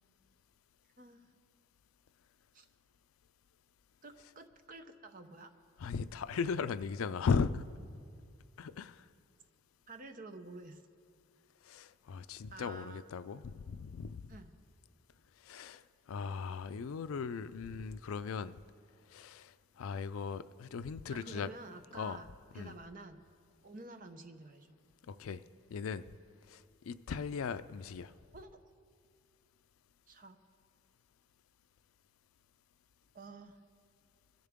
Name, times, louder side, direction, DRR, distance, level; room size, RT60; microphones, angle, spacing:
voice 1, 1.0-1.4 2.5-2.7 4.0-5.5 9.9-10.8 12.5-13.0 14.3-14.5 21.1-22.3 22.5-23.2 23.6-24.8 28.3-28.5 30.1-30.4 33.1-33.6, right 2 dB, 40° right, 7 dB, 0.7 m, -50 dB
voice 2, 5.8-7.7 8.6-9.1 11.6-14.3 15.4-18.6 19.1-21.5 21.9-22.2 22.6-22.7 25.1-25.4 25.7-26.1 26.5-28.1, left 5 dB, 85° left, 14 dB, 0.4 m, -37 dB
22.0 x 10.5 x 3.6 m, 2.3 s
head